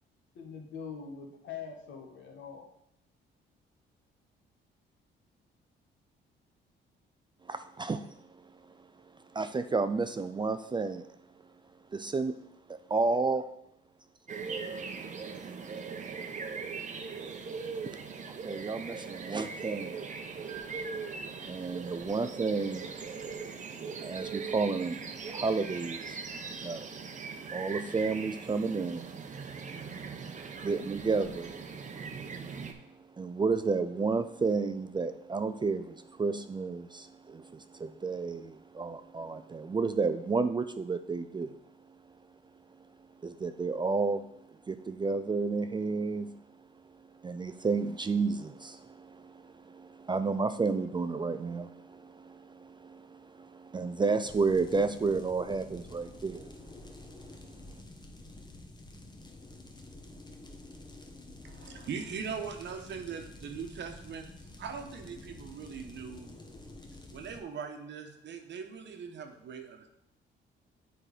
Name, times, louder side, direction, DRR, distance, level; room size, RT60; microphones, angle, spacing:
voice 1, 0.3-2.7, left 6 dB, 70° left, 1.5 m, -43 dB
voice 2, 7.5-8.0 9.3-11.0 11.9-12.3 12.9-13.5 18.3-20.0 21.5-22.9 23.8-26.9 27.5-29.1 30.6-31.6 33.2-41.6 43.2-44.2 44.7-46.3 47.2-56.6, right 4 dB, 25° right, 0.4 m, -31 dB
sound 1, 14.3-32.7, right 5 dB, 40° right, 0.8 m, -40 dB
sound 2, 54.2-67.4, left 2 dB, 20° left, 1.1 m, -49 dB
voice 3, 61.4-66.4 67.1-69.9, right 6 dB, 65° right, 1.1 m, -41 dB
7.5 x 4.5 x 4.9 m
cardioid pair, 90°, 20 cm